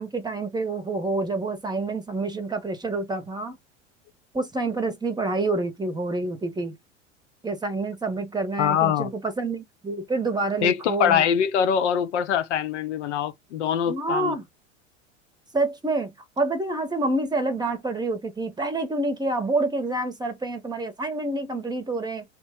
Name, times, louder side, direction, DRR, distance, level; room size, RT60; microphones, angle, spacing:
voice 1, 0.0-3.6 4.3-6.8 7.4-11.2 13.9-14.4 15.5-22.2, right 2 dB, 10° right, 0.8 m, -27 dB
voice 2, 8.6-9.1 10.6-14.3, left 8 dB, 70° left, 0.6 m, -23 dB
2.9 x 2.1 x 3.4 m
figure-of-eight pair, 80°, 37 cm